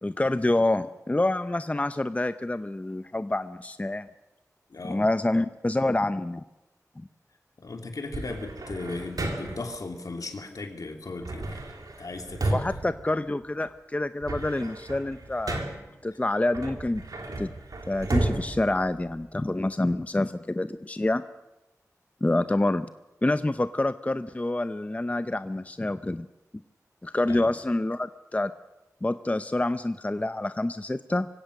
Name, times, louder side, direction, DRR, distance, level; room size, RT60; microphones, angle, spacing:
voice 1, 0.0-4.1 4.8-6.4 7.0-7.1 12.5-15.7 16.0-17.0 17.4-17.5 17.9-21.2 22.2-22.9 23.2-26.3 27.0-28.5 29.0-31.3, left 2 dB, 25° left, 11 dB, 0.7 m, -27 dB
voice 2, 4.7-5.0 7.6-11.6 12.0-12.7 27.3-27.5, left 3 dB, 75° left, 4 dB, 2.9 m, -37 dB
sound 1, 8.1-9.8 11.2-13.7 14.0-16.0 16.5-19.5, right 2 dB, 85° right, 2.7 m, -33 dB
24.5 x 16.5 x 6.6 m, 0.99 s
wide cardioid pair, 60°, 6 cm